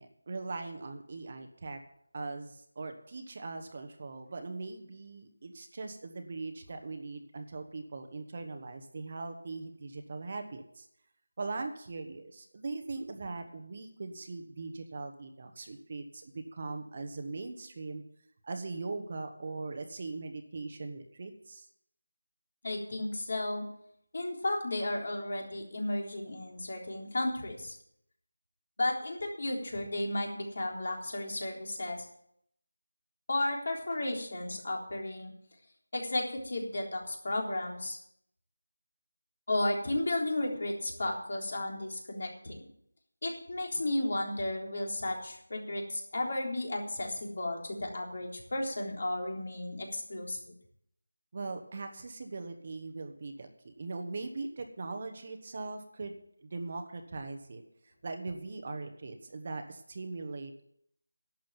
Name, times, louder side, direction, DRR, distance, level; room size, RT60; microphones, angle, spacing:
voice 1, 0.0-1.8 2.1-10.9 11.4-18.0 18.4-21.7 51.3-60.7, right 3 dB, 35° right, 5 dB, 1.2 m, -40 dB
voice 2, 22.6-23.6 24.1-27.8 28.8-32.1 33.3-35.3 35.9-38.0 39.5-42.6 43.2-50.5, left 1 dB, 50° left, 1 dB, 3.6 m, -33 dB
11.5 x 7.5 x 8.9 m, 0.71 s
figure-of-eight pair, 175°, 0 cm